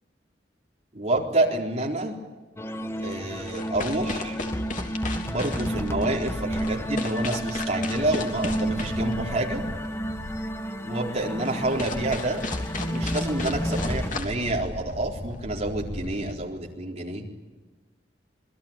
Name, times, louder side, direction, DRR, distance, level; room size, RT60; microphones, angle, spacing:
voice 1, 0.9-2.2 3.0-4.4 5.2-9.6 10.8-12.4 12.8-17.3, right 2 dB, 40° right, 0 dB, 4.1 m, -28 dB
sound 1, 2.6-14.1, equal, 15° left, 1.2 m, -31 dB
sound 2, 2.8-16.3, left 2 dB, 50° left, 3.2 m, -36 dB
27.5 x 21.0 x 9.0 m, 1.2 s
head